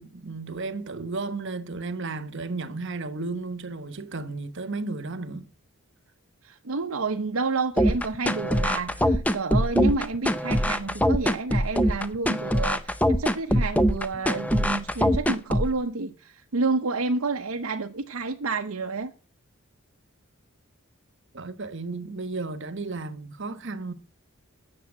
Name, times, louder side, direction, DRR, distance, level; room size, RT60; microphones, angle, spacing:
voice 1, 0.0-5.5 21.3-23.9, right 3 dB, 55° right, 1.1 m, -33 dB
voice 2, 6.4-19.1, right 3 dB, 75° right, 0.8 m, -29 dB
sound 1, 7.8-15.8, equal, 5° left, 0.6 m, -23 dB
9.7 x 7.2 x 8.4 m
head